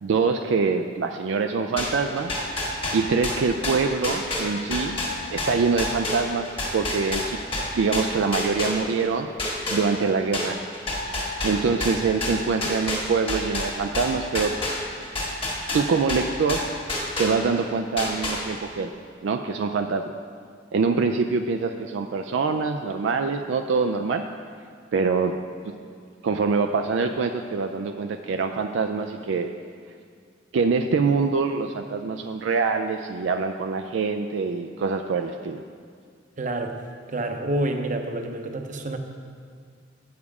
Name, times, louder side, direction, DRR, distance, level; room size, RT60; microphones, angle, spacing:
voice 1, 0.0-2.3 2.9-5.0 5.3-6.5 6.7-7.4 7.7-9.3 9.7-10.6 11.4-14.5 15.7-16.6 17.2-18.9 19.2-20.1 20.7-24.2 24.9-25.3 26.2-29.5 30.5-35.6, right 4 dB, 70° right, 6 dB, 0.4 m, -24 dB
sound 1, 1.8-9.1 9.4-17.6 18.0-18.8, left 2 dB, 30° left, 1.7 m, -29 dB
voice 2, 36.4-36.7 37.1-39.0, right 1 dB, 40° right, 5 dB, 0.7 m, -28 dB
8.4 x 7.2 x 4.8 m, 2.2 s
head